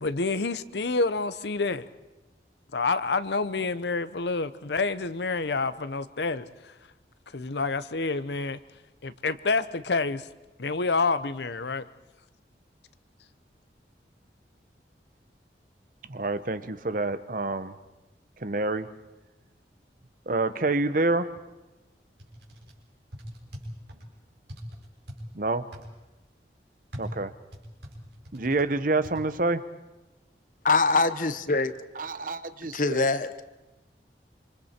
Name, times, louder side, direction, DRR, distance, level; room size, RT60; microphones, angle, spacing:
voice 1, 0.0-1.9 2.7-6.4 7.3-8.6 9.0-10.2 10.6-11.8, left 3 dB, 75° left, 0.9 m, -28 dB
voice 2, 16.1-17.8 18.4-18.9 20.3-21.3 25.3-25.7 27.0-27.3 28.3-29.6 32.0-33.1, right 2 dB, 50° right, 1.0 m, -27 dB
sound 1, 22.2-22.7 23.1-24.0 24.5-25.2 25.7-25.9 26.9-28.7 29.0-29.2, equal, 75° right, 4.5 m, -42 dB
voice 3, 30.6-31.7 32.7-33.4, left 3 dB, 50° left, 1.1 m, -23 dB
26.5 x 26.5 x 4.5 m
head